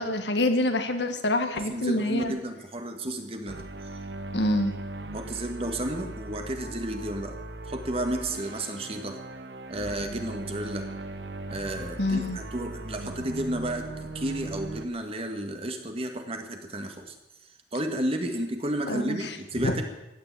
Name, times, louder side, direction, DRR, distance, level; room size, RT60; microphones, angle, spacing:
voice 1, 0.0-2.4 4.3-4.7 12.0-12.4 18.9-19.2 19.6-19.7, left 1 dB, 65° left, 7 dB, 1.7 m, -26 dB
voice 2, 1.5-3.7 5.1-7.3 7.7-9.2 9.7-10.8 11.5-17.2 17.7-19.8, right 1 dB, 30° right, 5 dB, 1.9 m, -32 dB
sound 1, 3.5-14.8, right 2 dB, 70° right, 1.1 m, -39 dB
15.5 x 10.5 x 8.5 m, 0.97 s
head